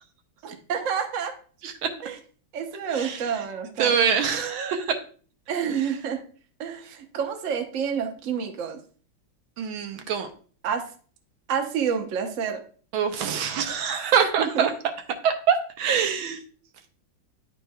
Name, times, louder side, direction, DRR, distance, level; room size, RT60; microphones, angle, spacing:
voice 1, 0.4-1.3 2.0-2.2 2.5-3.9 5.5-6.2 6.6-8.8 10.6-10.8 11.5-12.6 14.2-14.7, right 7 dB, 50° right, 3 dB, 1.0 m, -28 dB
voice 2, 2.9-3.2 3.8-5.0 9.6-10.3 12.9-14.7 15.2-16.4, right 7 dB, 80° right, 6 dB, 1.5 m, -24 dB
10.5 x 4.5 x 2.2 m, 0.42 s
omnidirectional pair, 2.3 m